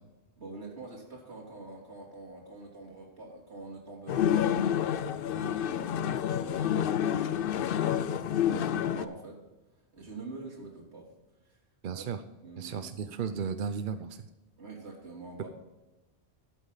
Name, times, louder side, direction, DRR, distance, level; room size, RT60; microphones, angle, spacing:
voice 1, 0.4-9.4 9.9-11.1 11.4-11.6 11.9-12.0 12.4-13.2 14.6-15.5, right 3 dB, 75° right, -3 dB, 3.3 m, -46 dB
sound 1, 4.1-9.0, left 9 dB, 60° left, 0.7 m, -28 dB
voice 2, 11.8-12.2 12.6-14.2, right 6 dB, 55° right, 10 dB, 0.7 m, -34 dB
12.5 x 8.3 x 3.9 m, 1.1 s
omnidirectional pair, 1.1 m